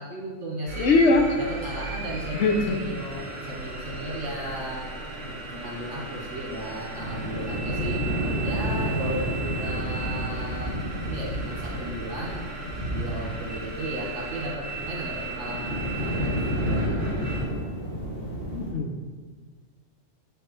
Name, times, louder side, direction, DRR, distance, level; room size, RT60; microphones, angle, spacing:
voice 1, 0.0-0.9 1.3-4.9 5.2-8.0 8.4-10.7 11.0-12.4 12.9-17.1, right 1 dB, 65° right, -4 dB, 1.7 m, -35 dB
sound 1, 0.7-17.4, right 3 dB, 35° right, 2.2 m, -36 dB
voice 2, 0.8-1.4 2.3-2.8 18.5-19.0, left 3 dB, 65° left, 4 dB, 1.0 m, -21 dB
sound 2, 1.8-4.8 5.2-5.3 5.4-5.5 5.8-5.9 6.4-14.1 14.4-18.7, equal, 40° left, 2.5 m, -31 dB
8.9 x 5.1 x 3.2 m, 1.5 s
omnidirectional pair, 1.3 m